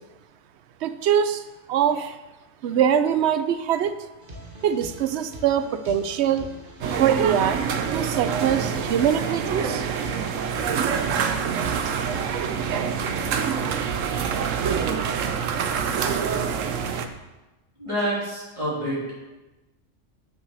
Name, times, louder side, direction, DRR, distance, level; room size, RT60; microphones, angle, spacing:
voice 1, 0.8-1.4 1.7-2.2 2.6-3.9 4.6-6.5 7.0-7.6 7.9-9.9, right 9 dB, 65° right, 11 dB, 0.8 m, -23 dB
sound 1, 4.2-17.0, equal, 45° right, 1.7 m, -42 dB
sound 2, 6.8-17.1, right 7 dB, 90° right, 1.1 m, -26 dB
voice 2, 17.8-19.1, right 1 dB, 25° right, -8 dB, 3.3 m, -27 dB
7.9 x 6.5 x 6.3 m, 1.1 s
omnidirectional pair, 1.3 m